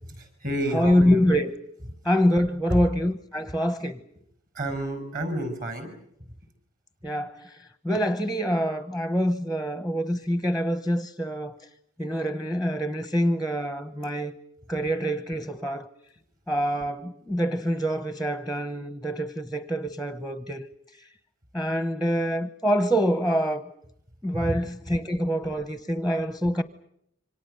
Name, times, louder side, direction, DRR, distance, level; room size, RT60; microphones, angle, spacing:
voice 1, 0.1-1.3 2.7-2.8 4.5-5.9 24.3-24.6, right 1 dB, 45° right, 6.0 m, -30 dB
voice 2, 0.7-1.5 2.0-4.0 7.0-7.5 7.8-11.6 12.0-14.3 14.7-15.9 16.5-20.6 21.5-23.6 24.2-26.6, equal, ahead, 0.9 m, -25 dB
27.5 x 25.5 x 6.8 m
head